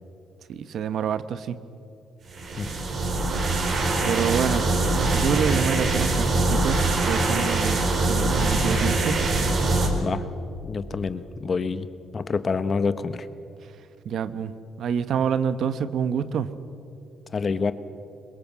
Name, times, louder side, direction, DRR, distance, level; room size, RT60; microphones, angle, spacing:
voice 1, 0.5-1.6 4.0-4.7 5.1-9.2 14.0-14.5 14.8-16.5, right 7 dB, 70° right, 13 dB, 1.0 m, -27 dB
sound 1, 2.3-9.9, right 2 dB, 55° right, 4.2 m, -23 dB
voice 2, 10.6-11.9 12.1-13.3 17.3-17.7, left 5 dB, 40° left, 13 dB, 1.1 m, -27 dB
23.5 x 21.0 x 7.5 m, 2.7 s
cardioid pair, 90°, 0 cm